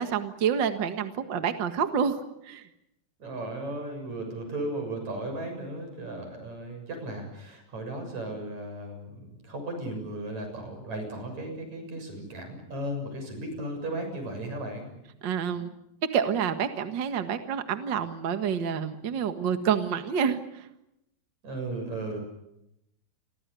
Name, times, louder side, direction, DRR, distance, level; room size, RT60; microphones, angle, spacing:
voice 1, 0.0-2.2 2.5-2.6 15.2-15.7 16.1-20.4, right 7 dB, 75° right, 8 dB, 1.0 m, -28 dB
voice 2, 3.2-14.9 21.4-22.2, right 1 dB, 40° right, 5 dB, 8.2 m, -36 dB
29.5 x 23.0 x 7.0 m, 0.84 s
omnidirectional pair, 4.8 m